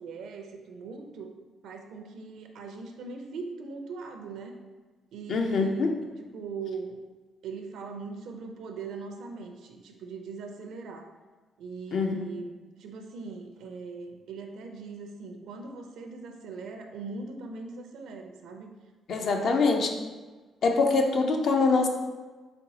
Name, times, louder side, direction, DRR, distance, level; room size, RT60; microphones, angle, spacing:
voice 1, 0.0-1.3 1.6-4.6 5.1-5.9 6.3-7.0 7.4-11.1 11.6-18.7, right 4 dB, 80° right, 3 dB, 0.5 m, -40 dB
voice 2, 5.3-5.9 11.9-12.2 19.1-19.9 20.6-21.9, left 4 dB, 60° left, 3 dB, 0.5 m, -24 dB
4.3 x 3.9 x 2.8 m, 1.3 s
cardioid pair, 90°, 0 cm